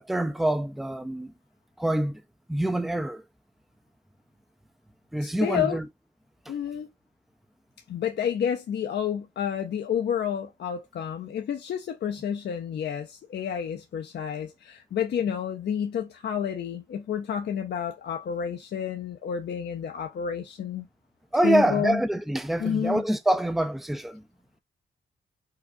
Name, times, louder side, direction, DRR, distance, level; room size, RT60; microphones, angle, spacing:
voice 1, 0.0-1.3 1.8-2.2 2.5-3.2 5.1-5.9 21.3-24.2, right 1 dB, ahead, 0.4 m, -25 dB
voice 2, 5.2-5.8 6.5-6.9 7.9-20.9 21.4-22.0 22.6-23.0, left 8 dB, 65° left, 0.5 m, -30 dB
4.7 x 2.3 x 2.6 m
wide cardioid pair, 130°, 19 cm